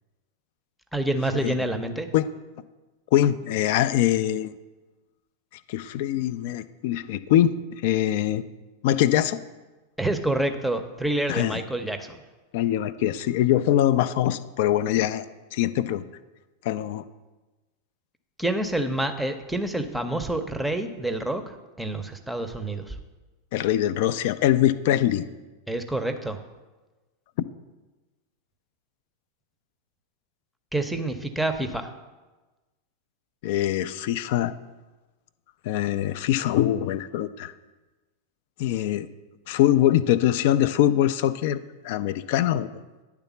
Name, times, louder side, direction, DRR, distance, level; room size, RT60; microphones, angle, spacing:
voice 1, 0.9-2.1 10.0-12.2 18.4-23.0 25.7-26.4 30.7-31.9, right 1 dB, ahead, 7 dB, 0.6 m, -27 dB
voice 2, 3.1-4.5 5.7-7.5 7.8-8.4 8.8-9.4 11.3-11.6 12.5-15.2 15.5-16.0 16.6-17.0 23.5-25.2 33.4-34.5 35.6-37.5 38.6-39.1 39.5-42.7, left 12 dB, 50° left, 15 dB, 0.3 m, -23 dB
9.6 x 3.5 x 7.0 m, 1.2 s
figure-of-eight pair, 90°, 0 cm